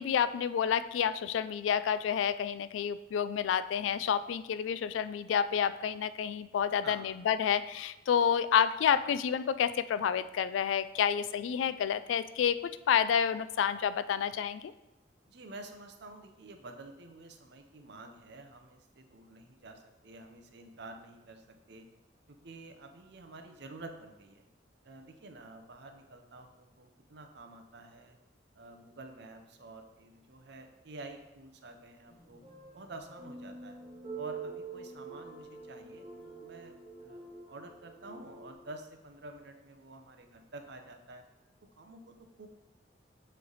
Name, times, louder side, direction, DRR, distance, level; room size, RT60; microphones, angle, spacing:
voice 1, 0.0-12.6 12.9-14.7, left 8 dB, 85° left, 15 dB, 0.3 m, -29 dB
voice 2, 15.3-21.9 22.3-24.4 24.8-28.2 28.5-32.4 32.7-33.8 34.1-41.2 41.8-42.5, right 2 dB, 65° right, 5 dB, 0.7 m, -49 dB
sound 1, 32.1-38.5, right 4 dB, 35° right, 1.9 m, -46 dB
7.5 x 3.3 x 3.9 m, 0.97 s
head